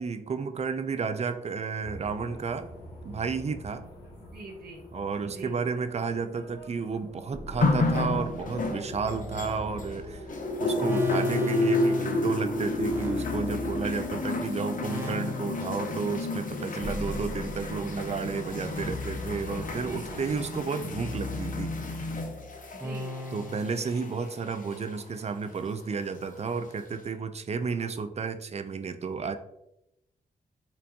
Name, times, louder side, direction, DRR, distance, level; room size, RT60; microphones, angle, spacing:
voice 1, 0.0-2.7 3.0-3.9 4.9-10.3 10.6-21.7 23.3-29.4, right 5 dB, 40° right, 10 dB, 0.4 m, -32 dB
sound 1, 1.8-20.7, left 1 dB, 85° left, 0.9 m, -46 dB
voice 2, 4.3-4.8 5.2-5.6 10.6-11.0 13.2-13.5 13.9-14.1 19.8-20.1 22.8-23.1, right 2 dB, 65° right, 1 dB, 0.9 m, -43 dB
sound 2, 7.3-14.3 14.8-15.9 16.8-18.0 18.8-20.0 20.8-23.6, left 2 dB, 15° right, 0.8 m, -38 dB
sound 3, 7.6-10.0 10.3-25.0 25.9-26.0, left 2 dB, 50° left, 0.6 m, -31 dB
4.3 x 2.6 x 2.8 m, 0.84 s
cardioid pair, 50°, 17 cm